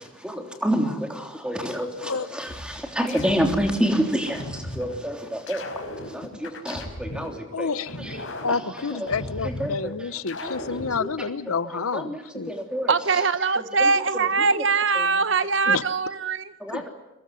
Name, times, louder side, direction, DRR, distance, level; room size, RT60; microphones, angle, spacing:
voice 1, 0.2-5.6 6.1-7.7 8.0-8.2 8.5-9.1 9.4-9.9 10.4-11.1 11.6-13.2 13.6-14.6 15.0-15.1 15.7-15.8 16.6-16.9, equal, 5° right, 3.3 m, -29 dB
voice 2, 2.0-2.4 7.5-8.0 8.4-12.5 15.7-15.8 16.7-16.9, left 4 dB, 90° left, 0.9 m, -29 dB
sound 1, 2.5-3.8 4.3-5.0 5.5-7.4 7.9-9.8 10.3-11.0, left 1 dB, 65° left, 4.9 m, -36 dB
voice 3, 12.9-16.5, right 4 dB, 60° right, 1.0 m, -22 dB
23.5 x 21.0 x 9.6 m
head